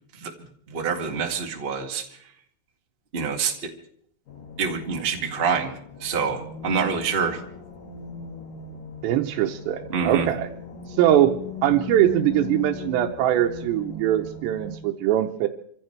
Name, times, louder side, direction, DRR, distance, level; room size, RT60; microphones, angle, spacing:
voice 1, 0.7-2.0 3.1-3.7 4.6-7.4 9.9-10.3, right 5 dB, 35° right, 1 dB, 0.9 m, -26 dB
sound 1, 4.3-14.8, left 5 dB, 55° left, 3.5 m, -38 dB
voice 2, 9.0-10.5 10.9-15.5, right 12 dB, 90° right, 2 dB, 3.1 m, -22 dB
27.5 x 15.5 x 3.3 m, 0.66 s
omnidirectional pair, 4.9 m